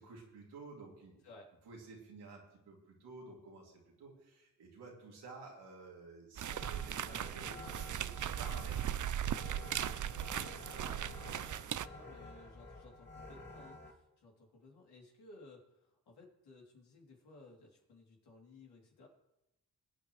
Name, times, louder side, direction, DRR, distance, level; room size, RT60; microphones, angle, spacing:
voice 1, 0.0-1.1 1.6-11.1, right 3 dB, 85° right, -2 dB, 2.7 m, -53 dB
sound 1, 6.4-11.9, right 10 dB, 50° right, 0.5 m, -38 dB
sound 2, 6.5-13.9, left 2 dB, 25° left, 2.7 m, -51 dB
voice 2, 11.9-19.1, left 2 dB, 80° left, -1 dB, 3.1 m, -58 dB
19.5 x 8.7 x 3.2 m, 0.89 s
supercardioid pair, 40°, 39 cm